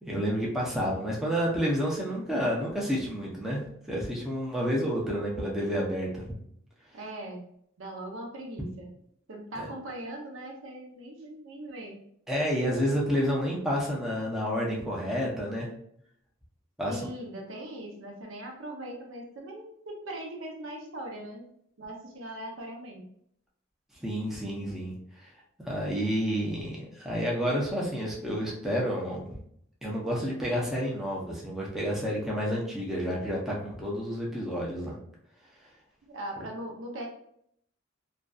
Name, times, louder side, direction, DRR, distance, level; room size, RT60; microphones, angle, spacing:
voice 1, 0.0-3.6 3.9-6.2 9.6-9.7 12.3-15.7 16.8-17.0 24.0-25.3 25.6-29.3 29.8-34.9 36.4-36.5, equal, ahead, -4 dB, 0.5 m, -30 dB
voice 2, 6.9-7.4 7.8-8.9 9.3-12.0 16.9-21.5 21.8-23.0 36.0-37.1, right 1 dB, 75° right, 1 dB, 0.6 m, -40 dB
2.5 x 2.2 x 2.3 m, 0.69 s
head